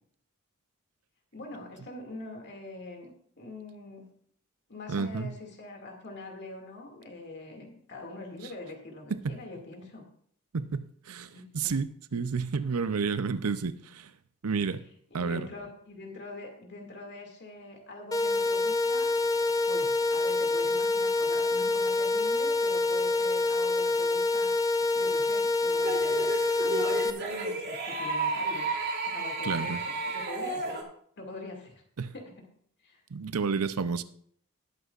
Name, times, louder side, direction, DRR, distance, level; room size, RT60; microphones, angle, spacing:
voice 1, 1.3-4.0 4.7-10.0 11.3-11.7 15.1-19.1 19.7-24.6 24.9-28.7 29.0-30.8 31.2-31.8 32.1-32.5 32.8-33.0, left 2 dB, 55° left, 2.4 m, -43 dB
voice 2, 4.9-5.3 9.1-9.4 10.5-14.1 14.4-14.8 15.1-15.5 29.4-29.8 32.0-32.1 33.1-34.0, right 5 dB, 85° right, 0.6 m, -31 dB
sound 1, 18.1-27.1, left 3 dB, 15° left, 0.5 m, -26 dB
sound 2, 25.7-30.8, right 3 dB, 50° right, 2.0 m, -32 dB
19.5 x 8.1 x 2.5 m
head